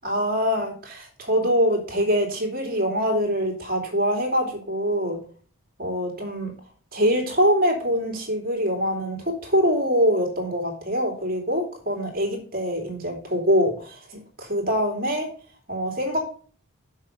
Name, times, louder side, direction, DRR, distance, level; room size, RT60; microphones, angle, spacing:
voice 1, 0.0-5.2 5.8-6.5 6.9-15.3 15.7-16.2, equal, 40° right, 2 dB, 2.8 m, -24 dB
7.0 x 5.6 x 6.5 m, 0.44 s
head